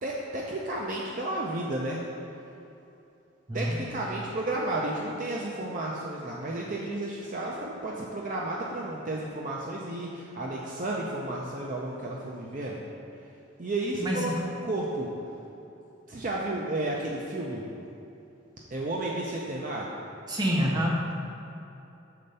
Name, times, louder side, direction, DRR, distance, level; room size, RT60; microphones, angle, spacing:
voice 1, 0.0-2.0 3.5-12.8 13.6-15.1 16.1-17.6 18.7-19.9, right 2 dB, 40° right, -3 dB, 0.5 m, -32 dB
voice 2, 20.3-21.1, equal, 20° right, -2 dB, 0.9 m, -27 dB
6.7 x 4.4 x 5.4 m, 2.8 s
head